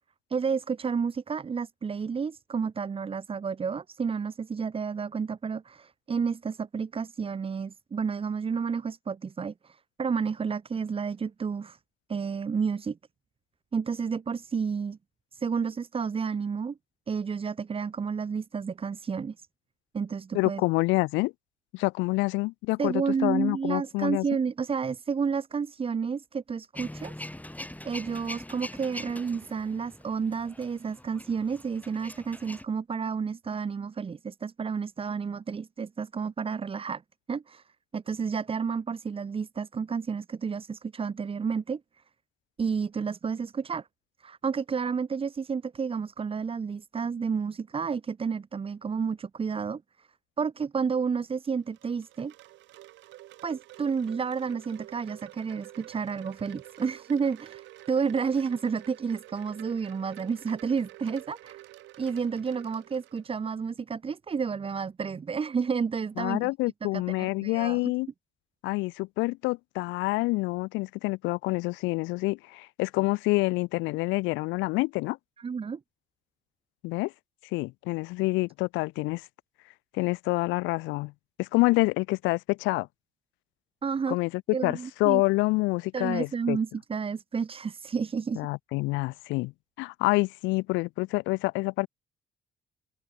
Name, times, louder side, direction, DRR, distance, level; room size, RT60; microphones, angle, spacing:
voice 1, 0.3-11.8 12.1-13.0 13.7-15.0 15.3-16.8 17.1-19.5 19.9-20.6 22.8-27.1 27.8-37.0 37.3-37.6 37.9-41.8 42.6-43.9 44.2-50.1 50.4-52.3 53.4-61.6 62.0-66.4 66.8-66.9 67.2-67.9 75.4-75.8 83.8-84.2 84.5-85.2 85.9-88.4, right 6 dB, 30° right, 0.7 m, -31 dB
voice 2, 20.3-21.3 21.7-24.2 66.2-68.1 68.6-75.2 76.8-77.1 77.5-79.2 79.9-81.1 81.4-82.9 84.1-84.3 84.6-86.6 88.3-89.5 89.8-91.9, left 23 dB, 80° left, 1.4 m, -27 dB
Male speech man speaking / Vehicle / Engine starting, 26.7-32.6, left 1 dB, 10° left, 5.7 m, -43 dB
Wind chime, 51.3-63.6, right 17 dB, 75° right, 5.0 m, -49 dB
open air
hypercardioid pair, 50°, 19 cm